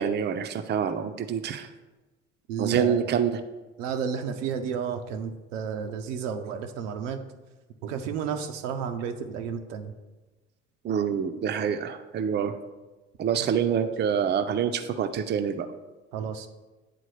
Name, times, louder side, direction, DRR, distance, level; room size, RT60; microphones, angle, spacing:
voice 1, 0.0-1.7 2.6-3.4 10.8-12.5 13.2-15.7, right 7 dB, 30° right, 8 dB, 0.5 m, -26 dB
voice 2, 2.5-3.1 3.8-7.2 7.8-9.9 13.4-13.5 16.1-16.5, right 7 dB, 85° right, 6 dB, 0.6 m, -32 dB
9.2 x 3.7 x 3.2 m, 1.2 s
hypercardioid pair, 65°, 36 cm